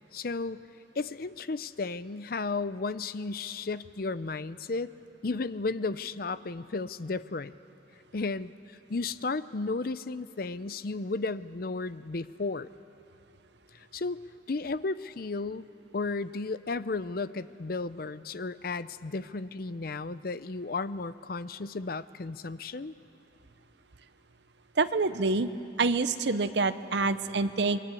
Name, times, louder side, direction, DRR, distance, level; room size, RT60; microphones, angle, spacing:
voice 1, 0.1-0.6 1.0-4.9 5.2-7.6 8.1-8.5 8.9-12.7 13.9-14.2 14.5-15.7 15.9-22.9, left 3 dB, 50° left, 15 dB, 0.6 m, -33 dB
voice 2, 24.8-25.5 25.8-27.8, right 3 dB, 65° right, 12 dB, 0.8 m, -26 dB
27.0 x 22.5 x 8.4 m, 2.8 s
head